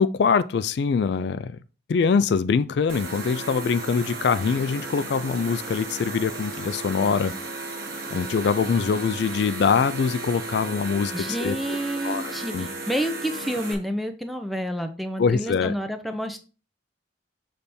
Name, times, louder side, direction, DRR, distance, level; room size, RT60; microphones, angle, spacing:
voice 1, 0.0-1.6 1.9-7.3 8.1-11.8 12.0-12.7 15.2-15.7, left 5 dB, 60° left, 0.3 m, -23 dB
sound 1, 2.9-13.7, right 2 dB, 50° right, 1.2 m, -35 dB
voice 2, 11.1-16.4, equal, ahead, 0.5 m, -29 dB
6.8 x 3.4 x 4.2 m
head